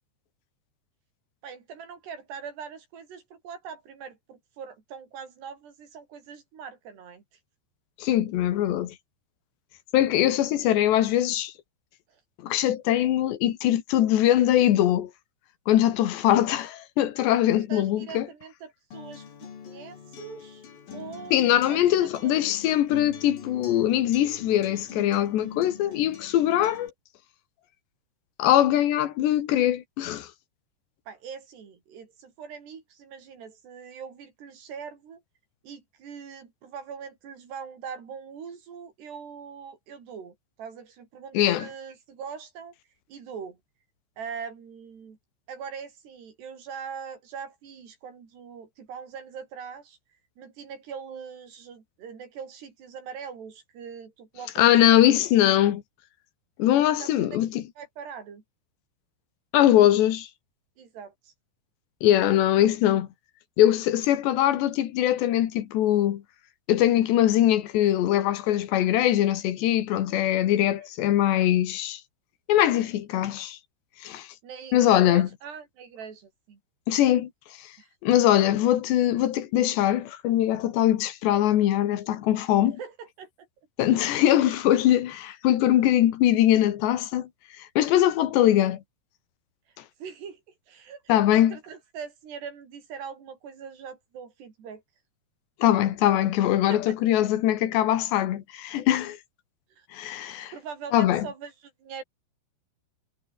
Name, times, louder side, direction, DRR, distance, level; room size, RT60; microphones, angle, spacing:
voice 1, 1.4-7.2 12.1-12.2 17.7-20.7 20.9-22.3 25.8-26.0 31.1-35.2 35.6-42.7 43.1-43.6 44.2-45.2 45.5-50.0 50.4-55.0 57.0-57.4 57.8-58.4 60.8-61.3 70.4-70.5 74.4-76.6 77.8-77.9 82.8-83.5 90.0-90.4 90.7-94.8 96.7-97.0 99.8-99.9 100.2-102.0, right 6 dB, 70° right, 6.4 m, -42 dB
voice 2, 8.0-9.0 9.9-11.5 12.4-15.1 15.7-18.3 21.3-26.9 28.4-30.3 41.3-41.7 54.6-55.8 56.6-57.6 59.5-60.3 62.0-63.1 63.6-66.2 66.7-72.0 72.5-73.6 74.0-74.3 74.7-75.3 76.9-77.3 78.0-82.8 83.8-87.3 87.8-88.8 91.1-91.6 95.6-99.2 99.9-100.5 100.9-101.3, left 12 dB, 80° left, 3.8 m, -22 dB
Acoustic guitar, 18.9-26.9, left 7 dB, 55° left, 4.9 m, -43 dB
omnidirectional pair, 5.0 m